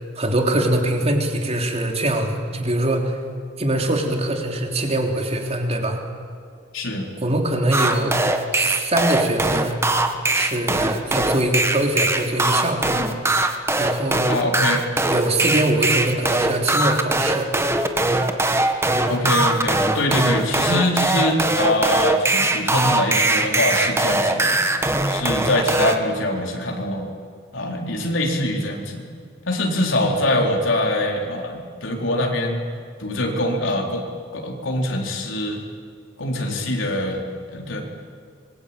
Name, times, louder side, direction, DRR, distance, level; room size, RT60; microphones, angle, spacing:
voice 1, 0.2-3.2 3.6-6.0 7.2-8.2 8.5-9.8 10.3-13.0 13.8-14.3 15.1-17.5 20.1-20.2, right 1 dB, 35° right, 2 dB, 3.5 m, -23 dB
voice 2, 6.7-7.1 14.3-14.9 19.1-24.6 25.0-27.1 27.5-29.0 29.5-32.6 33.0-34.1 34.3-35.6 36.2-37.2 37.5-37.8, left 1 dB, 85° left, 0 dB, 4.3 m, -23 dB
sound 1, 7.7-26.0, right 2 dB, 15° right, 1.6 m, -21 dB
25.5 x 22.5 x 9.0 m, 2.2 s
head